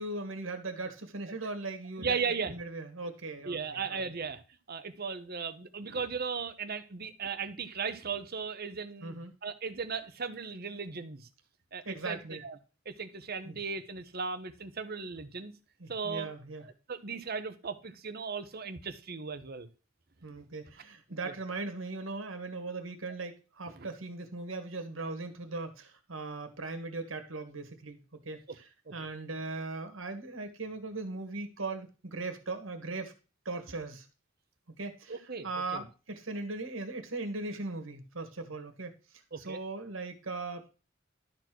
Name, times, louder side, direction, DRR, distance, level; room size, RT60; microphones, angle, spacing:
voice 1, 0.0-4.0 9.0-9.3 11.9-12.4 13.4-13.6 15.8-16.6 20.2-28.0 28.2-28.7 28.9-33.1 33.5-34.1 34.8-35.1 35.4-40.7, right 3 dB, 85° right, 7 dB, 1.8 m, -39 dB
voice 2, 2.0-2.6 3.4-4.4 4.7-9.2 9.4-11.3 11.7-12.6 12.8-15.5 15.9-16.3 16.9-19.7 21.1-21.3 23.8-23.9 28.9-29.0 35.1-35.8 39.3-39.6, right 5 dB, 50° right, 9 dB, 1.1 m, -37 dB
12.0 x 4.4 x 6.1 m, 0.33 s
head